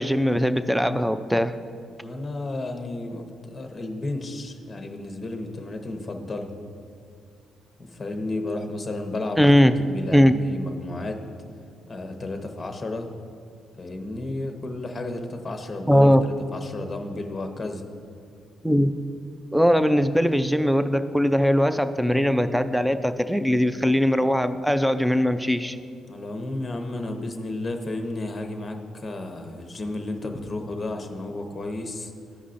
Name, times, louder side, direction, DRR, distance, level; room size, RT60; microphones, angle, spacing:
voice 1, 0.0-1.5 9.4-9.7 10.1-10.3 15.9-16.2 18.6-18.9 19.5-25.8, equal, ahead, 11 dB, 0.4 m, -20 dB
voice 2, 2.0-6.5 7.8-9.5 9.8-11.2 11.9-13.1 13.8-17.8 26.1-32.1, left 2 dB, 25° left, 4 dB, 0.9 m, -32 dB
14.0 x 5.4 x 2.5 m, 2.3 s
cardioid pair, 90°, 0 cm